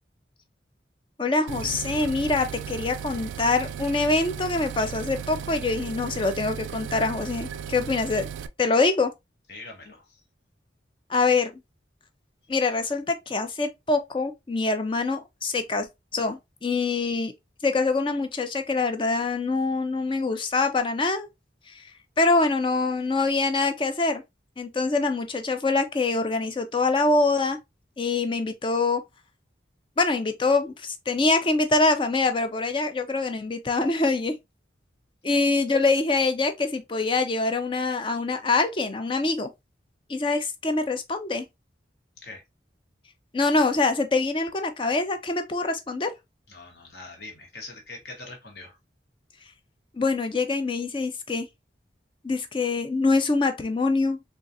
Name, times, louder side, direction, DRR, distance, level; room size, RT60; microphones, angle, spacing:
voice 1, 1.2-8.3 8.6-9.1 11.1-11.5 12.5-15.9 16.1-17.3 17.6-21.3 21.7-21.9 22.2-24.2 24.6-27.6 28.0-29.0 30.0-34.4 35.2-39.5 40.1-41.4 43.3-46.1 49.9-51.5 52.2-54.2, left 3 dB, 25° left, 0.4 m, -24 dB
sound 1, 1.5-8.5, right 8 dB, 85° right, 0.3 m, -36 dB
voice 2, 9.5-10.2 42.2-42.4 46.5-48.8, left 3 dB, 60° left, 1.0 m, -43 dB
3.7 x 2.3 x 2.5 m
head